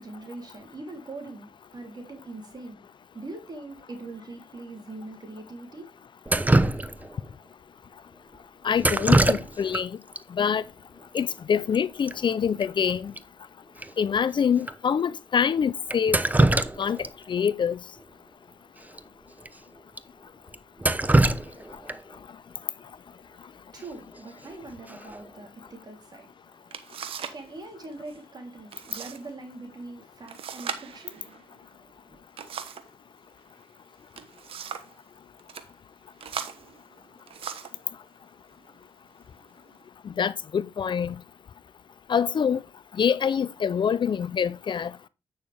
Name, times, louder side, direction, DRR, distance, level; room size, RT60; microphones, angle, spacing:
voice 1, 0.0-2.8 3.1-5.9 6.4-6.5 23.7-26.8 27.3-31.2 31.5-32.2, right 2 dB, 45° right, 3.4 m, -42 dB
Drip, 6.3-7.3 8.8-9.8 10.1-10.2 11.2-11.3 11.5-11.8 12.1-12.2 12.6-12.7 13.2-13.3 13.8-13.9 14.6-14.7 15.9-17.1 17.5-17.6 18.9-19.0 19.4-19.5 20.0-20.1 20.5-22.2 24.2-24.5 24.9-25.3, right 2 dB, 15° right, 0.9 m, -23 dB
voice 2, 8.6-10.0 10.4-10.6 11.1-13.1 14.0-16.5 16.8-17.0 17.3-17.8 40.2-41.1 42.1-42.6 43.0-44.9, left 7 dB, 55° left, 0.5 m, -25 dB
sound 1, 26.2-26.3 26.7-27.5 27.7-28.2 28.7-29.2 29.5-29.6 30.3-32.9 33.9-35.0 35.4-35.7 36.2-37.8 38.6-38.8 39.3-39.8, right 8 dB, 80° right, 1.1 m, -39 dB
9.4 x 6.4 x 3.4 m
supercardioid pair, 55°, 9 cm